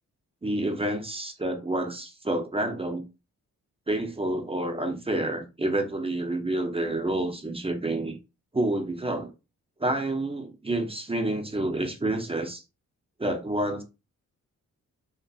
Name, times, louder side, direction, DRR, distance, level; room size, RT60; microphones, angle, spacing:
voice 1, 0.4-3.0 3.9-8.1 8.5-9.3 9.8-12.6 13.2-13.8, right 1 dB, 15° right, 0.6 m, -28 dB
2.6 x 2.5 x 2.3 m
supercardioid pair, 55°, 35 cm